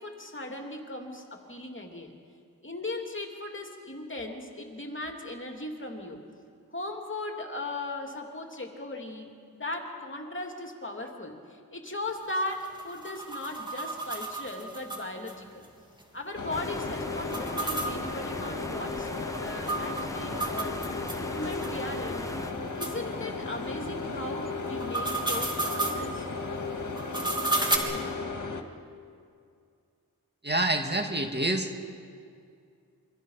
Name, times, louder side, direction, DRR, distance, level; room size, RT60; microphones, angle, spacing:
voice 1, 0.0-2.2 2.6-6.2 6.7-15.6 16.1-20.8 21.3-22.3 22.8-26.3, left 2 dB, 30° left, 2 dB, 2.8 m, -38 dB
sound 1, 12.1-15.3 15.6-15.7 16.0-16.1 17.2-21.2 21.6-21.7 22.3-22.4 22.8-22.9 24.6-26.0 27.0-27.8, right 2 dB, 10° right, 3.1 m, -33 dB
sound 2, 16.3-28.6, left 3 dB, 55° left, 2.1 m, -35 dB
sound 3, 16.5-22.5, left 1 dB, 10° left, 1.1 m, -40 dB
voice 2, 30.4-31.7, right 1 dB, 30° right, 4 dB, 2.0 m, -27 dB
28.0 x 24.0 x 5.7 m, 2.3 s
wide cardioid pair, 85°, 37 cm